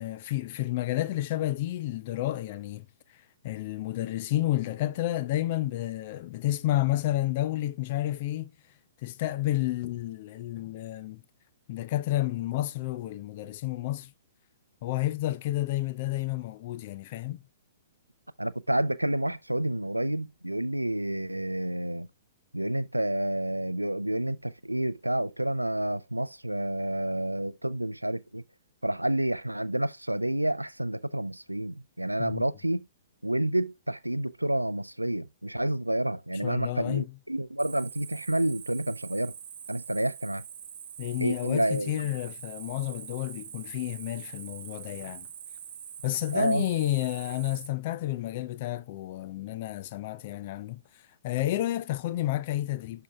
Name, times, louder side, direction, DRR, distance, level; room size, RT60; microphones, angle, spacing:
voice 1, 0.0-2.8 3.4-8.5 9.0-11.2 11.7-14.1 14.8-17.4 32.2-32.4 36.4-37.1 41.0-45.3 46.0-50.8 51.2-53.0, left 15 dB, 40° left, 0.5 m, -30 dB
voice 2, 18.4-22.1 22.5-28.4 28.8-32.8 33.2-39.3 39.7-40.4 41.2-42.0 46.3-46.6, right 1 dB, 85° right, 0.4 m, -29 dB
Cricket, 37.6-47.7, right 9 dB, 45° right, 1.1 m, -44 dB
11.5 x 4.6 x 2.3 m
figure-of-eight pair, 115°, 0 cm